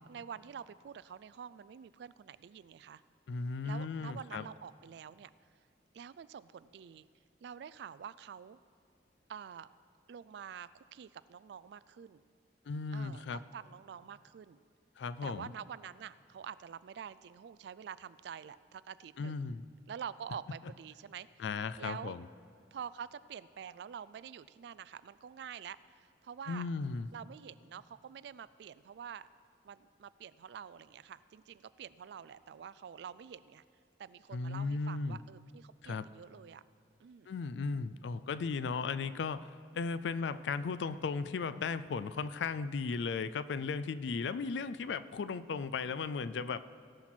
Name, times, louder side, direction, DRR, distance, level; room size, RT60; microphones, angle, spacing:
voice 1, 0.0-3.0 3.6-5.3 5.9-7.0 7.4-8.6 9.3-9.7 10.1-12.2 12.9-14.6 15.2-19.4 19.9-21.5 21.8-22.1 22.7-26.7 27.1-29.3 29.6-33.6 34.0-36.6 37.0-37.3, right 8 dB, 65° right, 17 dB, 0.3 m, -47 dB
voice 2, 3.3-4.4 12.7-13.4 15.0-15.5 19.2-19.7 21.4-22.3 26.5-27.1 34.3-35.2 35.8-36.1 37.3-46.6, left 4 dB, 70° left, 14 dB, 0.4 m, -36 dB
17.5 x 5.9 x 4.4 m, 2.5 s
head